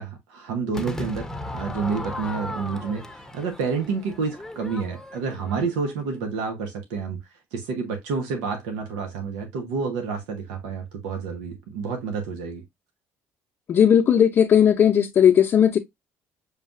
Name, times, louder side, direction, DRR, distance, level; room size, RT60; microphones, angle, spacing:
voice 1, 0.0-7.2 7.5-12.6, right 5 dB, 90° right, 0.8 m, -29 dB
Crowd / Fireworks, 0.7-6.0, left 1 dB, 5° left, 0.8 m, -36 dB
voice 2, 13.7-15.8, left 9 dB, 50° left, 0.6 m, -17 dB
6.5 x 2.4 x 2.5 m
supercardioid pair, 85°, 6 cm